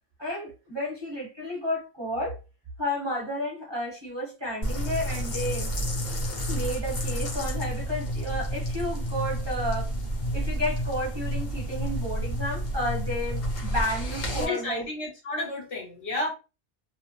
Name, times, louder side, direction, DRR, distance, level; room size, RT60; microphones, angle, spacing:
voice 1, 0.2-2.3 2.8-5.7 6.4-9.9 10.3-14.9, left 1 dB, 25° right, 1.0 m, -32 dB
sound 1, 4.6-14.5, equal, 60° left, 1.1 m, -30 dB
voice 2, 14.3-16.3, left 2 dB, 85° left, 1.5 m, -31 dB
2.8 x 2.0 x 3.1 m
omnidirectional pair, 1.1 m